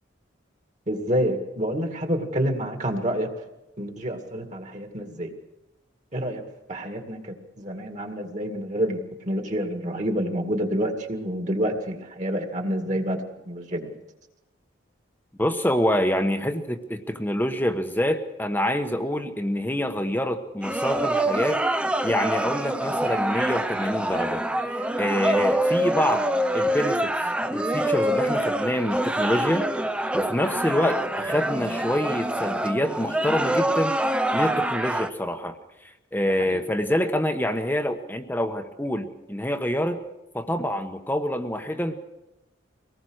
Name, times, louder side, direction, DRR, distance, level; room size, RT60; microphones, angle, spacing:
voice 1, 0.9-3.3 3.8-5.3 6.1-6.4 6.7-9.0 9.3-13.2 13.5-13.9, equal, 35° right, 4 dB, 2.2 m, -28 dB
voice 2, 15.4-21.6 22.0-26.3 26.5-27.1 27.5-29.7 30.1-33.9 34.3-35.6 36.1-40.0 40.3-42.0, left 1 dB, 10° left, 7 dB, 1.1 m, -26 dB
sound 1, 20.6-35.1, right 1 dB, 5° right, 0.7 m, -25 dB
24.0 x 19.0 x 6.4 m, 0.96 s
head